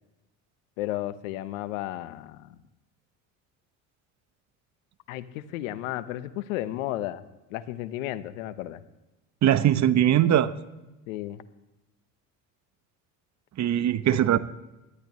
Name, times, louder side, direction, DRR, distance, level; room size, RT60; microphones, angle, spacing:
voice 1, 0.8-2.5 5.1-7.2 7.5-8.8 11.1-11.4, left 14 dB, 85° left, 14 dB, 0.9 m, -33 dB
voice 2, 9.4-10.5 13.6-14.4, right 11 dB, 45° right, 14 dB, 0.9 m, -21 dB
18.0 x 12.5 x 3.1 m, 1.0 s
supercardioid pair, 85°, 40 cm